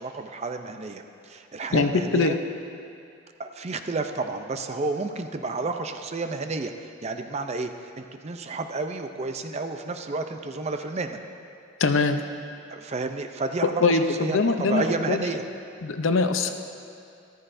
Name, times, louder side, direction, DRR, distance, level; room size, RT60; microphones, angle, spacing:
voice 1, 0.0-2.4 3.4-7.7 8.0-11.2 12.7-15.4, right 3 dB, 35° right, 7 dB, 0.5 m, -31 dB
voice 2, 1.7-2.4 11.8-12.2 13.8-15.2 15.8-16.5, left 3 dB, 70° left, 7 dB, 0.6 m, -22 dB
14.0 x 13.5 x 2.6 m, 2.5 s
head